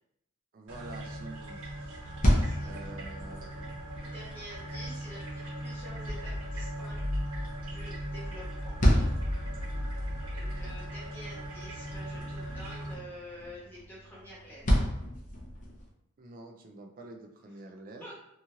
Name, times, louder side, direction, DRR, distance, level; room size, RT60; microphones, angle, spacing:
voice 1, 0.5-1.6 2.6-3.7 16.2-18.0, right 2 dB, 45° right, 4 dB, 0.4 m, -47 dB
sound 1, 0.7-12.9, equal, 80° right, 1.0 m, -37 dB
sound 2, 1.9-15.9, equal, 40° left, 0.6 m, -33 dB
voice 2, 2.3-2.8 4.0-7.0 7.5-8.7 10.0-14.8 18.0-18.2, equal, 10° left, -7 dB, 1.1 m, -48 dB
2.9 x 2.4 x 2.7 m, 0.76 s
head